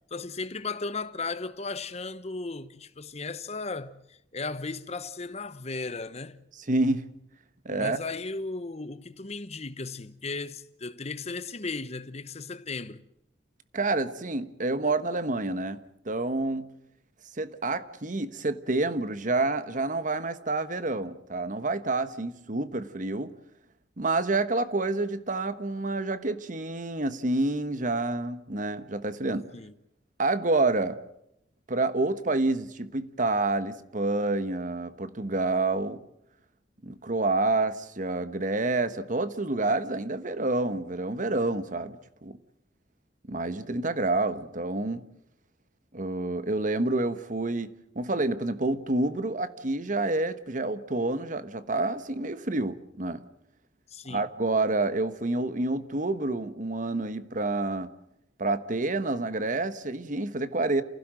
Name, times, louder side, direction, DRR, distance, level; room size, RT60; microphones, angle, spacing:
voice 1, 0.1-6.4 7.7-13.0 29.5-29.7 53.9-54.3, left 3 dB, 35° left, 1.0 m, -36 dB
voice 2, 6.7-7.1 7.6-8.0 13.7-16.7 17.4-23.3 24.0-29.5 30.2-31.0 31.7-36.0 36.8-42.4 43.3-45.0 45.9-53.2 54.1-57.9 58.4-60.8, right 2 dB, 45° right, 1.2 m, -28 dB
28.5 x 16.0 x 7.7 m
head